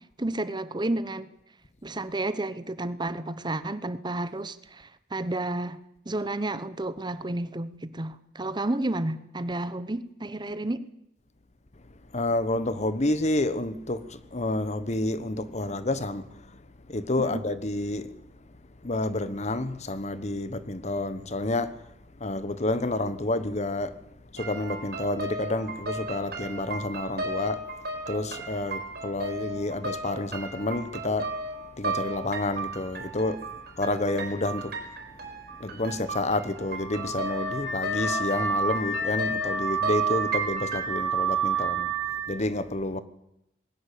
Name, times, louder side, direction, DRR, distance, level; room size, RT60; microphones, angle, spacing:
voice 1, 0.2-1.3 1.8-5.8 6.0-10.9 17.2-17.4, right 2 dB, 25° right, 0.9 m, -31 dB
voice 2, 12.1-16.2 16.9-18.1 18.8-21.7 22.2-23.9 24.3-27.6 28.1-31.3 31.8-33.4 33.8-34.7 35.6-41.9 42.3-43.0, left 2 dB, 40° left, 1.2 m, -29 dB
sound 1, 24.4-40.8, right 2 dB, 60° right, 4.9 m, -36 dB
Car / Alarm, 36.8-42.3, right 4 dB, ahead, 3.6 m, -29 dB
20.5 x 17.0 x 8.6 m
head